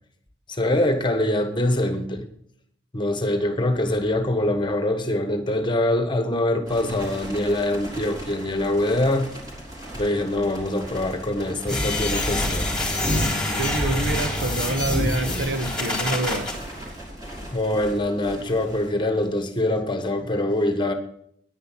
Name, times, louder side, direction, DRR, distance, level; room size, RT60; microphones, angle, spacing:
voice 1, 0.5-2.2 2.9-9.3 9.9-12.7 17.5-20.9, left 1 dB, 25° left, 1.4 m, -24 dB
sound 1, 6.7-19.5, right 1 dB, 20° right, 3.7 m, -39 dB
sound 2, 11.7-16.5, left 1 dB, 5° left, 3.5 m, -25 dB
voice 2, 13.6-16.6, right 2 dB, 75° right, 1.4 m, -26 dB
10.0 x 9.7 x 5.9 m
head